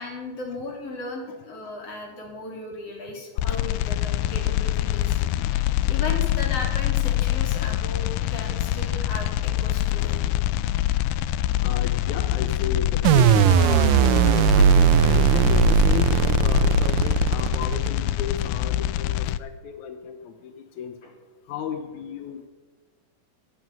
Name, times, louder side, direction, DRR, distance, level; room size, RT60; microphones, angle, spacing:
voice 1, 0.0-5.2 5.5-10.2 21.0-21.1, left 2 dB, 45° left, 0 dB, 4.1 m, -36 dB
sound 1, 3.4-19.4, left 13 dB, 85° left, 2.2 m, -24 dB
voice 2, 3.4-3.7 5.4-5.6 10.0-10.2 11.6-20.9 21.5-22.5, left 7 dB, 70° left, 7 dB, 2.2 m, -34 dB
sound 2, 13.1-18.1, right 10 dB, 75° right, 2.2 m, -18 dB
15.0 x 8.8 x 9.1 m, 1.3 s
omnidirectional pair, 3.9 m